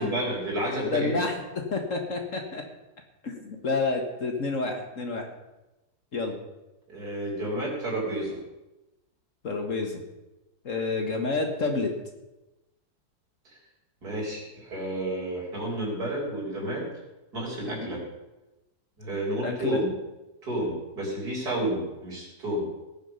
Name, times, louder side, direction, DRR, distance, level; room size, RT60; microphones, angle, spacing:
voice 1, 0.0-1.3 6.9-8.4 14.0-16.9 17.3-18.0 19.0-19.9 20.4-22.7, right 1 dB, 60° right, -4 dB, 4.9 m, -30 dB
voice 2, 0.9-2.6 3.2-5.3 6.1-6.4 9.4-10.0 10.6-11.9 19.4-19.8, left 3 dB, 50° left, 4 dB, 1.6 m, -29 dB
19.0 x 7.1 x 5.5 m, 1.0 s
omnidirectional pair, 1.8 m